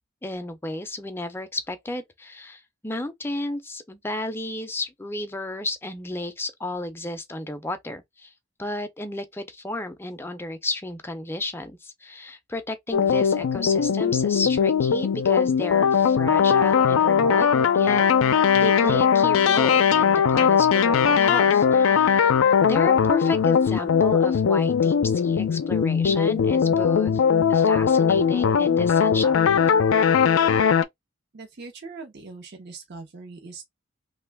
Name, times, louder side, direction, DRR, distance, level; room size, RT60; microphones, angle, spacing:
voice 1, 0.2-8.3 8.6-17.5 17.7-18.0 18.6-22.2 22.6-27.2 27.5-29.5, left 2 dB, 10° left, 0.5 m, -33 dB
sound 1, 12.9-30.8, left 7 dB, 90° left, 0.4 m, -19 dB
voice 2, 31.3-33.6, right 4 dB, 55° right, 0.7 m, -41 dB
3.0 x 2.3 x 3.3 m
head